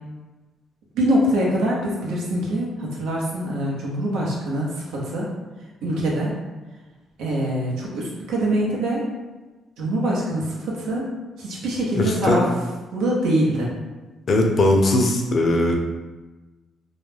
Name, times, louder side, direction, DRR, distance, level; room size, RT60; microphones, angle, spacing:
voice 1, 0.9-5.3 5.8-6.4 7.2-9.1 9.8-11.1 11.4-12.5 12.9-13.7, right 1 dB, 90° right, -4 dB, 0.7 m, -24 dB
voice 2, 12.0-12.4 14.3-15.8, left 1 dB, 50° left, 2 dB, 0.4 m, -19 dB
2.3 x 2.1 x 3.2 m, 1.2 s
cardioid pair, 90°, 0 cm